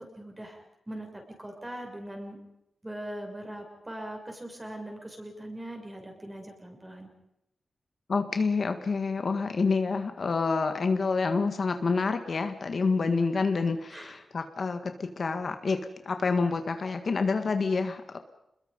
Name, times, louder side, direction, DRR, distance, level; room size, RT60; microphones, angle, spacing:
voice 1, 0.0-2.4 2.8-7.1 13.9-14.2, right 1 dB, 15° right, 2 dB, 6.7 m, -41 dB
voice 2, 8.1-15.8 16.0-18.2, left 4 dB, 55° left, 7 dB, 1.7 m, -28 dB
28.5 x 21.5 x 5.4 m, 0.85 s
wide cardioid pair, 105°, 0 cm